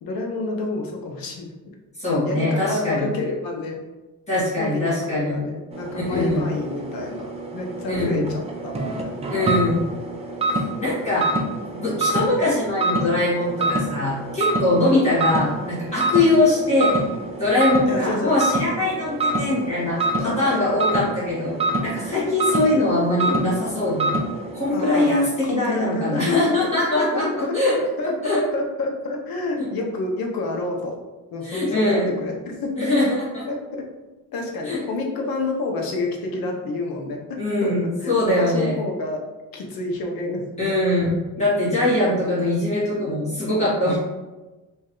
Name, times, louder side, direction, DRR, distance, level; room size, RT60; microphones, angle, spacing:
voice 1, 0.0-1.7 2.2-3.8 4.6-9.2 9.4-9.7 14.8-15.1 17.9-18.3 20.2-20.6 24.7-31.0 31.3-33.1 33.5-33.8 34.3-39.2 39.5-40.7, left 2 dB, 90° left, 1 dB, 0.9 m, -29 dB
voice 2, 2.0-3.1 4.3-5.4 5.9-6.4 7.9-8.2 9.3-9.9 10.8-11.3 11.7-17.0 17.4-24.1 24.5-27.7 28.0-28.4 29.6-29.7 31.4-32.1 32.8-33.4 34.6-34.8 37.4-38.8 40.6-44.0, left 2 dB, 20° left, -9 dB, 1.5 m, -22 dB
sound 1, 5.7-24.8, right 2 dB, 20° right, 0.4 m, -27 dB
3.2 x 2.7 x 3.7 m, 1.1 s
cardioid pair, 150°, 34 cm